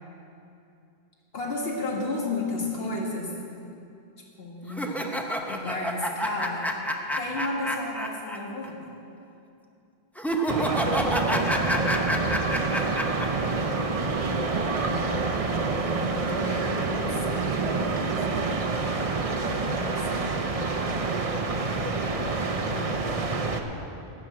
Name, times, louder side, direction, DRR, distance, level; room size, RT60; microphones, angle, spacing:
voice 1, 1.3-3.3 4.4-4.6 5.5-6.7 7.2-8.9, left 2 dB, 70° left, -2 dB, 2.1 m, -31 dB
voice 2, 2.8-3.1 4.6-5.2 16.0-18.4 19.4-20.3 22.7-23.4, left 1 dB, 45° left, 1 dB, 1.2 m, -39 dB
sound 1, 4.7-8.4 8.6-8.7 10.2-13.3, equal, ahead, 0.6 m, -28 dB
sound 2, 10.5-23.6, right 3 dB, 40° right, 0.7 m, -27 dB
13.5 x 6.1 x 8.6 m, 2.7 s
omnidirectional pair, 1.1 m